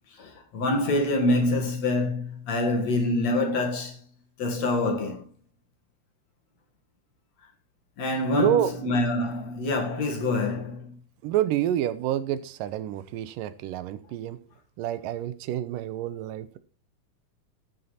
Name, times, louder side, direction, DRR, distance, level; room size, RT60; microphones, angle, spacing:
voice 1, 0.1-4.0 4.4-5.3 8.0-10.9, left 2 dB, 55° left, 2.9 m, -26 dB
voice 2, 8.3-8.7 11.2-14.4 14.8-16.6, right 12 dB, 80° right, 2.3 m, -28 dB
14.0 x 6.6 x 4.2 m
omnidirectional pair, 3.8 m